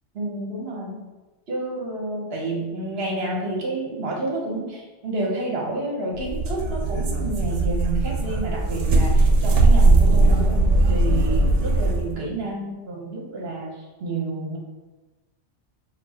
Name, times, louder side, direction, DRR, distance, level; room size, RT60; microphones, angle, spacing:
voice 1, 0.1-1.1 1.5-14.6, right 2 dB, 60° right, -2 dB, 1.2 m, -30 dB
sound 1, 6.1-12.1, right 2 dB, 80° right, 1.0 m, -19 dB
6.8 x 2.4 x 2.9 m, 1.2 s
omnidirectional pair, 1.2 m